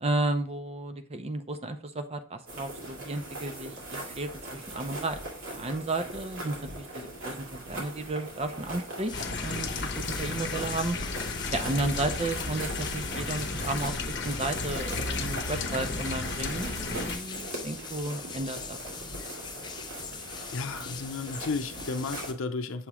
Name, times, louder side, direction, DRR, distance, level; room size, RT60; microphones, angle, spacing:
voice 1, 0.0-5.2 5.5-9.1 9.4-11.0 11.5-18.8, right 2 dB, 30° right, 0.5 m, -33 dB
sound 1, 2.5-22.3, right 1 dB, 80° right, 2.2 m, -41 dB
sound 2, 9.1-17.2, left 3 dB, 60° left, 0.8 m, -34 dB
sound 3, 9.1-22.3, left 6 dB, 20° left, 0.4 m, -42 dB
voice 2, 20.5-22.9, left 4 dB, 90° left, 0.6 m, -33 dB
7.1 x 3.0 x 4.8 m
head